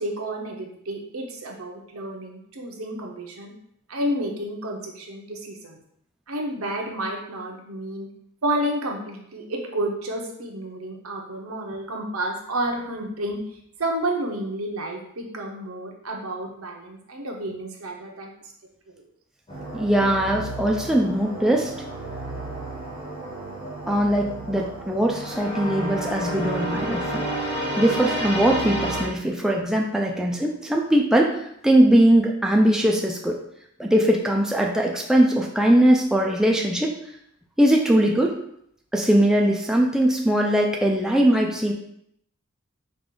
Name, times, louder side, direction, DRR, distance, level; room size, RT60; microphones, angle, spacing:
voice 1, 0.0-3.5 3.9-5.8 6.3-8.1 8.4-13.4 13.8-18.3 19.0-19.1, right 1 dB, 75° right, 0 dB, 0.8 m, -30 dB
moving strings, 19.5-29.1, right 1 dB, 25° left, 1.3 m, -31 dB
voice 2, 19.7-21.7 23.9-27.2 27.8-33.4 33.8-36.9 37.6-38.4 38.9-41.7, right 1 dB, 5° right, 0 dB, 0.3 m, -20 dB
4.9 x 2.4 x 3.7 m, 0.72 s
head